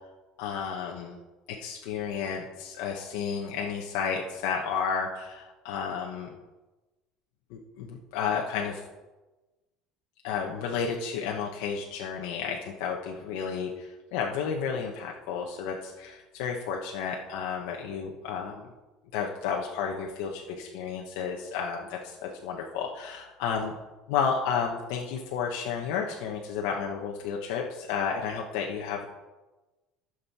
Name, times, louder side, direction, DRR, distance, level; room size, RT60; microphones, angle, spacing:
voice 1, 0.4-1.2 1.6-6.3 7.5-8.8 10.2-18.7 19.1-23.7 24.1-29.1, left 6 dB, 75° left, 0 dB, 1.1 m, -32 dB
14.5 x 6.5 x 4.3 m, 1.1 s
cardioid pair, 175°, 0 cm